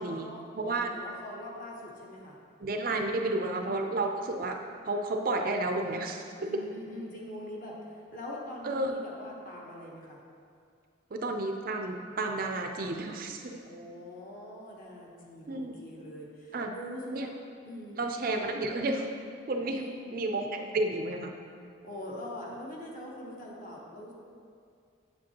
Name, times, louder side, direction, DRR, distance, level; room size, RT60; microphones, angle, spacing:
voice 1, 0.0-2.4 3.2-3.7 6.5-10.2 13.6-17.3 17.7-18.0 19.7-20.0 21.8-24.1, left 1 dB, 40° left, -3 dB, 1.0 m, -43 dB
voice 2, 0.6-0.9 2.6-4.6 4.9-6.2 8.6-8.9 11.1-13.6 15.5-15.8 16.5-16.8 17.1-17.3 18.0-19.1 19.5-19.8 20.1-21.3, right 2 dB, 45° right, 4 dB, 0.4 m, -31 dB
7.6 x 7.0 x 2.9 m, 2.3 s
head